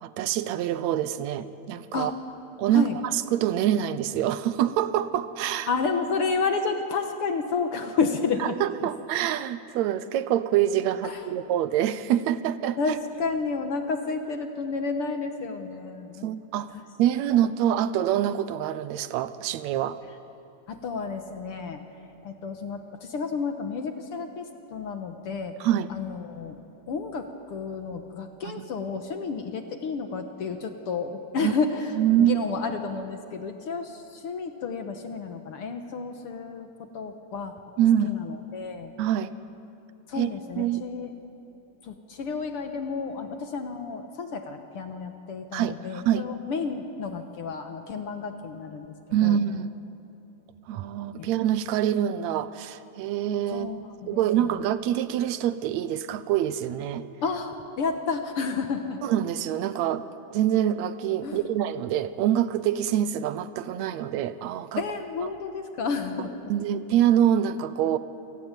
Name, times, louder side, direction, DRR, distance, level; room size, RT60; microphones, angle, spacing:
voice 1, 0.0-2.1 2.6-5.7 8.4-12.8 16.2-16.7 17.0-20.0 25.6-25.9 28.4-28.7 31.4-31.5 32.0-32.5 37.8-38.2 39.0-39.3 40.2-40.3 40.6-40.8 45.5-46.3 49.1-49.7 50.7-53.7 54.1-57.0 59.0-60.0 60.3-64.8 66.5-68.0, right 11 dB, 75° right, 13 dB, 1.9 m, -25 dB
voice 2, 5.7-8.6 8.8-8.9 11.0-11.2 12.8-16.3 16.7-16.8 17.3-17.5 20.7-21.8 22.2-25.5 25.9-26.6 26.9-31.9 32.2-37.5 38.0-38.9 40.1-41.1 41.8-48.9 49.2-49.4 51.2-51.3 53.5-54.5 57.2-59.0 61.2-61.4 64.8-66.3, left 4 dB, 60° left, 6 dB, 1.8 m, -31 dB
28.0 x 17.5 x 9.0 m, 2.9 s
omnidirectional pair, 3.4 m